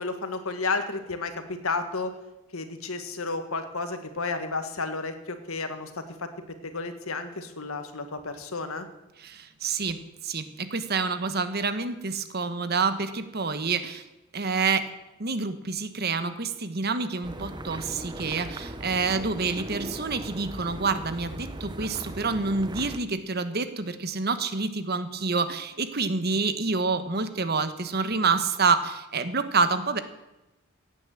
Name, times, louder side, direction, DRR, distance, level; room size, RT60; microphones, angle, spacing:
voice 1, 0.0-2.1 2.5-6.3 6.6-8.9, left 3 dB, 85° left, 8 dB, 1.8 m, -32 dB
voice 2, 9.2-14.0 14.3-14.9 15.2-30.0, right 4 dB, 50° right, 11 dB, 1.2 m, -28 dB
sound 1, 17.2-23.0, right 1 dB, 20° right, 0.8 m, -38 dB
16.0 x 9.4 x 7.7 m, 0.98 s
head